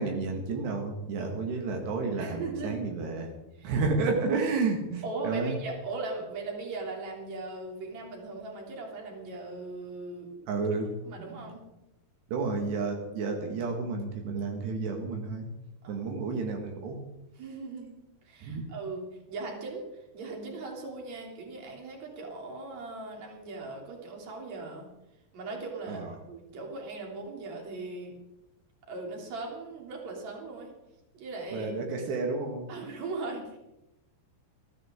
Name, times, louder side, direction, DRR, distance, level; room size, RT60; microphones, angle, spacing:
voice 1, 0.0-3.3 3.6-5.6 10.5-11.5 12.3-15.5 15.9-17.0 18.4-18.7 25.9-26.1 31.5-32.7, right 4 dB, 80° right, 2 dB, 4.0 m, -31 dB
voice 2, 2.1-2.8 3.6-3.8 5.0-10.3 11.0-11.6 15.8-16.1 17.3-17.9 18.2-24.9 25.3-28.2 28.9-30.7 31.1-31.8 32.7-33.6, right 3 dB, 45° right, 0 dB, 4.1 m, -39 dB
22.0 x 14.5 x 3.8 m, 0.94 s
omnidirectional pair, 4.8 m